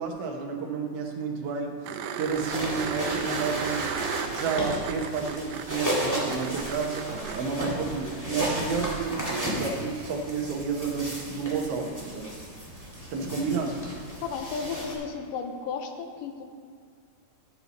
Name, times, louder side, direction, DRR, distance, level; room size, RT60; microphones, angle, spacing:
voice 1, 0.0-3.9 4.3-12.3 13.1-13.8, right 5 dB, 65° right, 0 dB, 1.6 m, -31 dB
sound 1, 1.8-7.4 10.1-10.2, right 8 dB, 85° right, 2.2 m, -35 dB
sound 2, 2.2-14.9, equal, 10° left, 1.2 m, -34 dB
sound 3, 3.2-6.9 7.7-12.7 13.2-14.0, left 1 dB, 50° left, 2.7 m, -49 dB
voice 2, 14.2-16.4, left 5 dB, 85° left, 5 dB, 2.4 m, -34 dB
13.5 x 7.2 x 4.1 m, 2.1 s
omnidirectional pair, 3.8 m